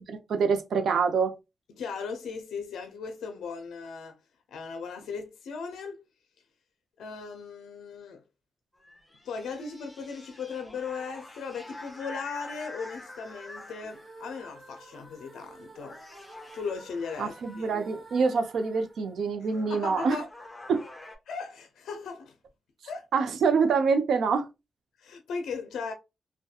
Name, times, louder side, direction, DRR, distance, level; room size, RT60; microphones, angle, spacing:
voice 1, 0.1-1.3 17.2-20.2 20.7-20.9 23.1-24.5, right 5 dB, 80° right, 0.5 m, -25 dB
voice 2, 1.8-4.2 4.5-6.0 7.0-8.2 9.2-16.0 16.5-17.7 19.7-20.3 21.3-22.3 22.8-23.2 25.0-25.9, left 5 dB, 90° left, 0.4 m, -37 dB
sound 1, 8.7-14.3 15.2-15.5 15.8-17.6 19.0-19.1 19.4-21.2, left 2 dB, 15° left, 0.7 m, -46 dB
sound 2, 13.8-20.0, right 2 dB, 10° right, 1.2 m, -51 dB
2.7 x 2.2 x 2.2 m
cardioid pair, 75°, 0 cm